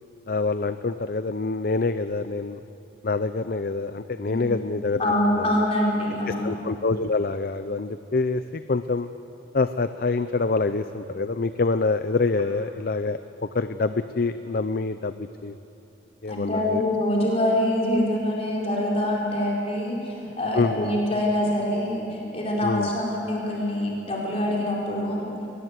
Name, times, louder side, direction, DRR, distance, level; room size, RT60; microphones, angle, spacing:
voice 1, 0.3-2.6 3.0-5.5 6.3-9.1 9.5-15.5 16.2-16.8 20.5-21.0 22.6-22.9, left 3 dB, 55° left, 11 dB, 0.6 m, -26 dB
voice 2, 4.3-4.6 5.0-6.5 16.3-25.3, left 1 dB, 35° left, -3 dB, 4.7 m, -25 dB
22.5 x 20.0 x 8.2 m, 2.7 s
head